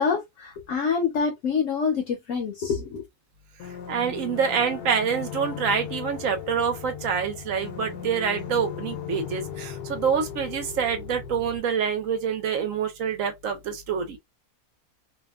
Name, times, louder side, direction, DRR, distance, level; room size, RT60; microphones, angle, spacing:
voice 1, 0.0-3.0, left 5 dB, 65° left, 0.9 m, -26 dB
sound 1, 3.6-11.6, left 8 dB, 85° left, 1.2 m, -37 dB
voice 2, 3.9-14.2, right 7 dB, 65° right, 1.0 m, -26 dB
2.8 x 2.2 x 2.2 m
omnidirectional pair, 1.6 m